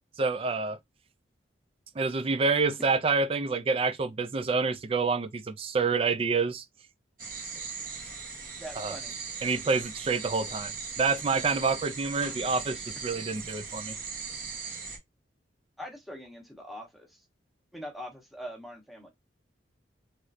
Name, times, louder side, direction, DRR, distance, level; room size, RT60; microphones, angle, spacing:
voice 1, 0.2-0.8 2.0-6.6 8.8-8.9 9.4-14.0, right 4 dB, 30° right, 0.3 m, -28 dB
sound 1, 7.2-15.0, right 5 dB, 50° right, 1.0 m, -39 dB
voice 2, 8.6-9.1 15.8-17.2 17.7-19.1, equal, ahead, 0.9 m, -42 dB
3.1 x 2.7 x 2.5 m
head